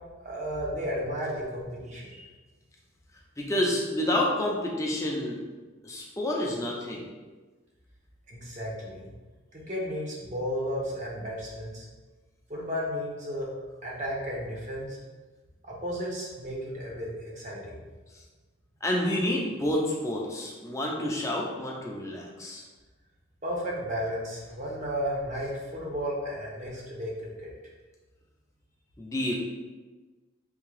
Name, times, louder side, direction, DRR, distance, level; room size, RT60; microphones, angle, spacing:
voice 1, 0.2-2.3 8.3-9.1 9.5-11.9 12.5-13.5 13.8-15.0 15.6-17.8 23.4-27.5, equal, 40° right, -3 dB, 0.8 m, -33 dB
voice 2, 3.4-5.4 5.8-7.1 18.1-18.2 18.8-22.6 29.0-29.3, left 1 dB, 15° left, -2 dB, 0.5 m, -29 dB
3.6 x 2.9 x 3.2 m, 1.3 s
head